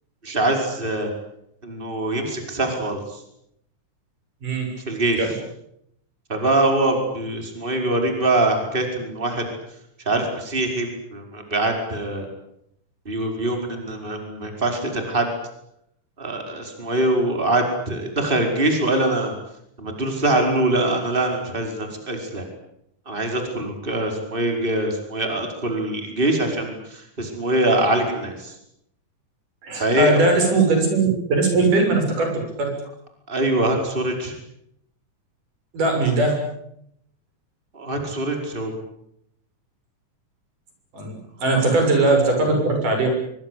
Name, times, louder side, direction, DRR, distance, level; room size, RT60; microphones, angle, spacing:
voice 1, 0.2-1.1 1.6-3.2 4.9-5.3 6.3-9.4 10.1-12.3 13.1-15.3 16.2-19.3 19.8-22.5 23.1-28.6 29.8-30.2 33.3-34.3 37.7-38.7 41.5-41.6, right 2 dB, 15° right, 4 dB, 5.2 m, -23 dB
voice 2, 29.6-32.7 35.7-36.4 40.9-43.1, right 3 dB, 90° right, 3 dB, 8.4 m, -20 dB
24.5 x 24.0 x 8.4 m, 0.75 s
omnidirectional pair, 3.6 m